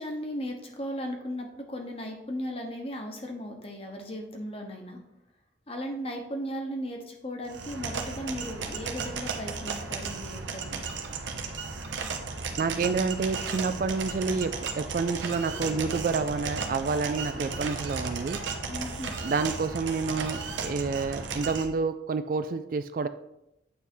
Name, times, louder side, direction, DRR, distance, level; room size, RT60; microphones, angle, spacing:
voice 1, 0.0-5.0 5.7-10.8 18.7-19.2, equal, 30° left, 3 dB, 1.0 m, -36 dB
sound 1, 7.5-21.7, right 4 dB, 75° right, 0.8 m, -35 dB
voice 2, 12.6-18.4 19.2-23.1, right 4 dB, 45° right, 10 dB, 0.3 m, -29 dB
sound 2, 15.0-21.5, left 1 dB, 50° left, 0.6 m, -46 dB
8.4 x 3.4 x 4.4 m, 0.83 s
head